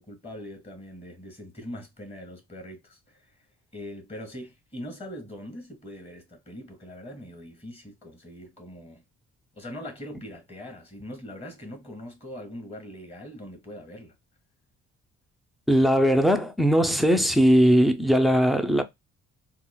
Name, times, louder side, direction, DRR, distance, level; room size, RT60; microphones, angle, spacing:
voice 1, 0.0-3.2 3.7-9.0 9.6-14.1, left 1 dB, 20° left, 1.7 m, -41 dB
voice 2, 15.7-18.8, equal, ahead, 0.5 m, -19 dB
3.6 x 2.5 x 2.2 m
cardioid pair, 90°, 30 cm